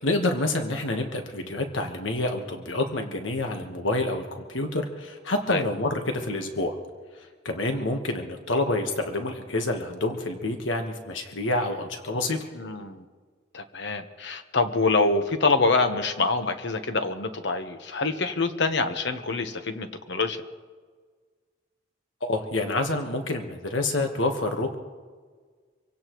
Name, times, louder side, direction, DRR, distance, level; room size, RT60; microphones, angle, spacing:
voice 1, 0.0-6.8 7.1-12.4 22.3-24.7, left 2 dB, 90° left, 4 dB, 1.4 m, -28 dB
voice 2, 12.5-13.0 13.5-20.4, left 3 dB, 65° left, 8 dB, 1.2 m, -25 dB
26.0 x 17.0 x 3.1 m, 1.5 s
head